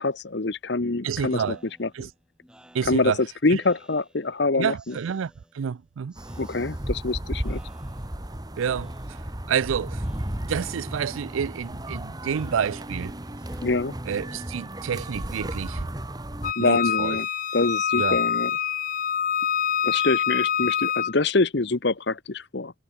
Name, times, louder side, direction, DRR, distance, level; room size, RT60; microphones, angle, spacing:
voice 1, 0.0-1.4 1.8-2.1 2.9-4.7 6.4-7.6 13.6-13.9 16.6-17.3 17.5-18.5 19.8-22.7, left 3 dB, 60° left, 0.9 m, -25 dB
voice 2, 1.0-1.6 1.9-2.1 2.7-3.2 3.5-3.6 4.6-6.2 8.6-8.9 9.5-10.0 10.3-13.2 14.1-15.9 16.6-17.2 18.0-18.2, right 7 dB, 90° right, 0.4 m, -29 dB
Speech synthesizer, 1.3-4.4 4.8-5.8 6.1-7.1 7.4-8.3 8.7-9.6 9.9-10.7 11.0-14.6, equal, 5° right, 6.1 m, -54 dB
sound 1, 6.2-16.5, right 1 dB, 20° right, 1.6 m, -34 dB
Wind instrument woodwind instrument, 16.4-21.1, left 8 dB, 40° left, 0.5 m, -25 dB
head